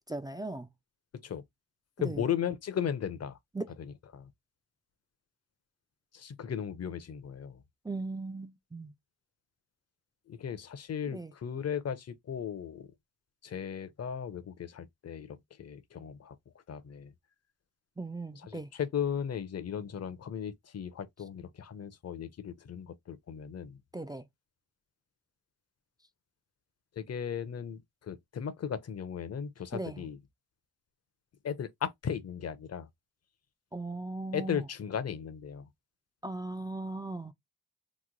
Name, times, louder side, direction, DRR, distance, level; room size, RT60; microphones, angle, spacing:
voice 1, 0.1-0.7 2.0-2.2 3.5-3.7 7.8-8.9 11.1-11.3 18.0-18.7 23.9-24.3 29.7-30.0 33.7-34.6 36.2-37.3, right 2 dB, 10° right, 0.3 m, -38 dB
voice 2, 2.0-3.4 3.8-4.3 6.1-7.6 10.3-12.9 13.4-16.4 16.7-17.1 18.3-23.8 27.0-30.2 31.4-32.9 34.3-35.7, left 8 dB, 40° left, 0.6 m, -36 dB
3.1 x 2.1 x 3.7 m
cardioid pair, 90°, 39 cm